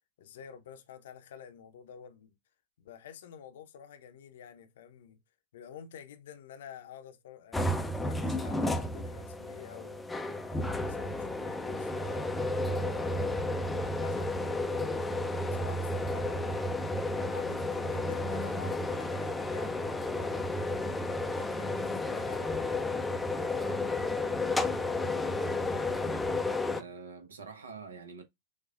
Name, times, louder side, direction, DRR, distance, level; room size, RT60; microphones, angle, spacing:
voice 1, 0.2-2.4 2.8-5.2 5.5-10.1 10.5-13.6 13.8-15.0 15.5-20.4 21.2-26.2, left 8 dB, 60° left, 0.7 m, -49 dB
sound 1, 7.5-26.8, left 2 dB, 5° left, 0.5 m, -32 dB
voice 2, 26.7-28.2, right 5 dB, 70° right, 0.9 m, -46 dB
6.4 x 2.3 x 2.4 m
figure-of-eight pair, 90°, 0 cm